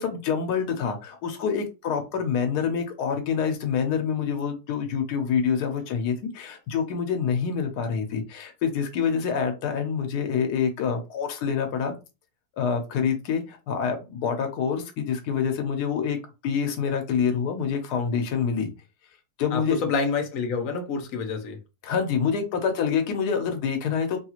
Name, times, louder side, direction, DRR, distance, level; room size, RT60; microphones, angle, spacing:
voice 1, 0.0-11.9 12.6-16.2 16.4-18.7 19.4-19.8 21.8-24.2, left 6 dB, 85° left, 1.2 m, -26 dB
voice 2, 19.5-21.6, left 4 dB, 65° left, 1.1 m, -28 dB
3.0 x 2.4 x 2.9 m
omnidirectional pair, 1.7 m